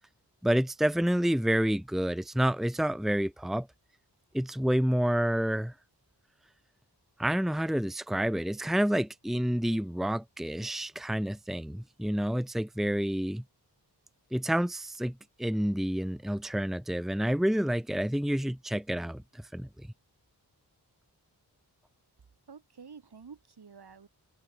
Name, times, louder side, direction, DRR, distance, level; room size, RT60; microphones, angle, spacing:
voice 1, 0.4-3.7 4.3-5.7 7.2-13.4 14.3-19.9, equal, ahead, 1.3 m, -29 dB
voice 2, 22.5-24.1, right 6 dB, 70° right, 7.7 m, -50 dB
wide cardioid pair, 120°, 41 cm